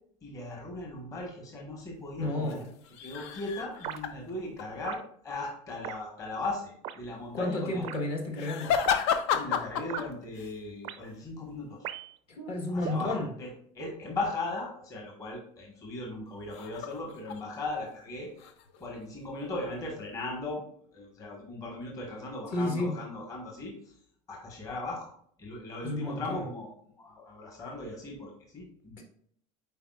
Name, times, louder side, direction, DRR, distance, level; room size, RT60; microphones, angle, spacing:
voice 1, 0.2-2.6 3.0-7.8 9.3-11.9 12.7-18.3 18.8-20.6 20.9-23.9 24.3-25.1 25.4-26.7 27.0-29.0, left 2 dB, 25° left, -1 dB, 1.4 m, -38 dB
voice 2, 2.2-2.6 7.3-8.8 12.4-13.3 22.5-23.0 25.8-26.4 29.0-29.1, left 2 dB, 40° left, 1 dB, 1.3 m, -31 dB
sound 1, 2.4-4.7 8.3-10.6 11.0-11.2 16.5-17.8 18.1-19.3 19.8-20.2, left 7 dB, 70° left, 0.7 m, -32 dB
sound 2, 3.8-4.0 4.8-5.0 5.8-6.0 6.8-7.0 7.8-8.0 8.8-9.0 9.9-10.0 10.8-11.0 11.8-12.2 12.8-13.1, right 11 dB, 40° right, 0.4 m, -38 dB
8.4 x 4.7 x 2.4 m, 0.64 s
cardioid pair, 160°, 15 cm